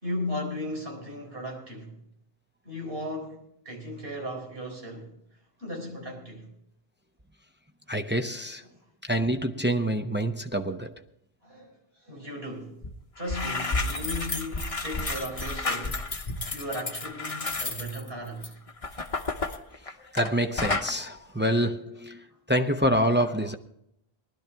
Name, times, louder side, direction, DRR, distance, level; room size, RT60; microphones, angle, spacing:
voice 1, 0.0-2.0 2.6-5.1 5.6-6.5 11.4-12.8 13.2-16.0 16.5-18.6, left 1 dB, 70° right, 4.6 m, -36 dB
voice 2, 7.9-8.6 9.1-10.9 20.1-23.6, equal, 15° right, 0.6 m, -26 dB
sound 1, 12.8-12.9 13.2-20.3 20.6-20.9, left 3 dB, 35° left, 1.1 m, -31 dB
19.5 x 12.0 x 3.4 m
omnidirectional pair, 1.0 m